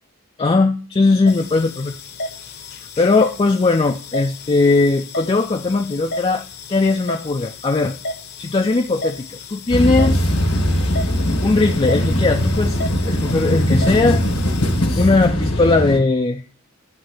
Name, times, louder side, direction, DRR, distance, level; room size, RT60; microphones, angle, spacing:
voice 1, 0.4-2.0 3.0-8.0 8.4-10.2 11.4-12.8 13.0-14.2 15.0-16.4, left 3 dB, 25° left, 3 dB, 0.4 m, -18 dB
sound 1, 1.3-14.8, left 2 dB, 50° left, 0.8 m, -34 dB
sound 2, 9.7-16.0, equal, 80° left, 1.4 m, -20 dB
9.4 x 3.2 x 6.4 m, 0.40 s
head